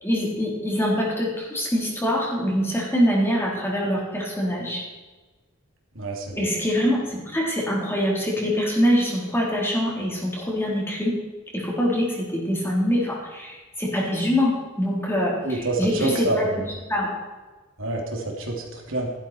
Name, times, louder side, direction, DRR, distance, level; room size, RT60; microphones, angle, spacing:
voice 1, 0.0-4.8 6.3-11.2 11.5-16.5 16.9-17.1, equal, 10° left, -3 dB, 3.9 m, -24 dB
voice 2, 5.9-6.6 15.4-16.6 17.8-19.1, right 2 dB, 65° right, 0 dB, 2.8 m, -27 dB
14.0 x 12.5 x 4.4 m, 1.3 s
head